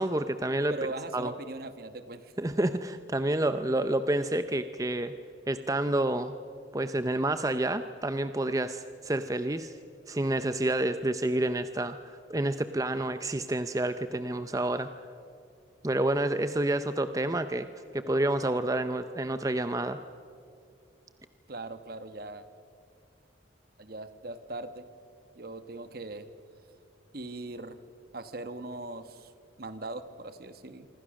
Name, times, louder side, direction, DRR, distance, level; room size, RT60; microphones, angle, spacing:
voice 1, 0.0-0.8 1.1-1.3 2.4-5.1 5.5-6.3 6.7-9.7 10.1-14.9 15.8-17.7 17.9-20.0, right 1 dB, 20° right, 10 dB, 0.6 m, -29 dB
voice 2, 0.7-2.3 21.5-22.5 23.8-24.8 25.4-26.3 27.1-27.8 28.1-29.3 29.6-30.9, right 2 dB, 50° right, 10 dB, 1.2 m, -40 dB
26.0 x 25.5 x 6.4 m, 2.5 s
head